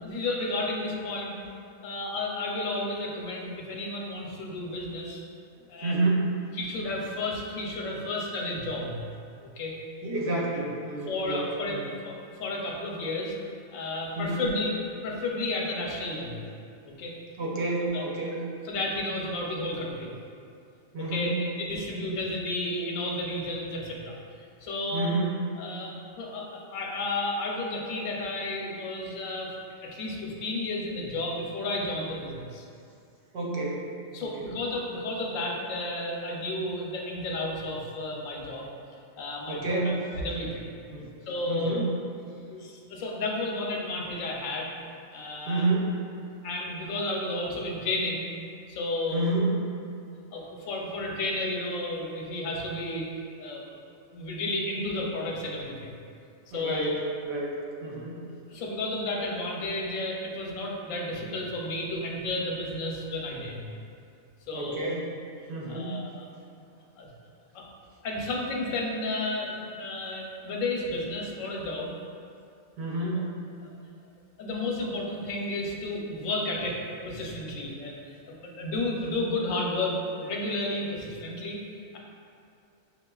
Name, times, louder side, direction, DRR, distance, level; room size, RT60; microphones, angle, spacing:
voice 1, 0.0-1.3 1.8-5.2 5.7-5.9 6.6-9.0 9.4-9.7 11.1-13.3 13.7-14.7 15.0-16.4 16.8-17.2 17.9-18.0 18.6-20.1 21.0-24.2 24.6-25.1 25.6-29.5 29.8-32.6 34.1-38.7 39.2-40.7 41.3-41.8 42.5-44.7 45.1-45.7 46.4-48.2 48.7-49.3 50.3-53.1 53.4-53.7 54.1-55.9 56.5-57.0 58.5-63.7 64.5-65.0 65.7-66.2 67.0-67.1 67.5-67.6 68.0-71.9 74.4-81.6, left 2 dB, 90° left, -1 dB, 1.0 m, -32 dB
voice 2, 5.8-6.3 10.0-11.9 14.2-14.4 17.4-18.4 20.9-21.4 24.9-25.4 33.3-33.9 34.2-34.5 39.5-39.9 40.9-41.1 41.5-41.9 45.5-45.9 49.1-49.5 56.5-58.2 64.5-65.0 65.5-66.0 72.8-73.2, right 2 dB, 60° right, -4 dB, 0.8 m, -29 dB
6.1 x 2.4 x 2.2 m, 2.4 s
omnidirectional pair, 1.4 m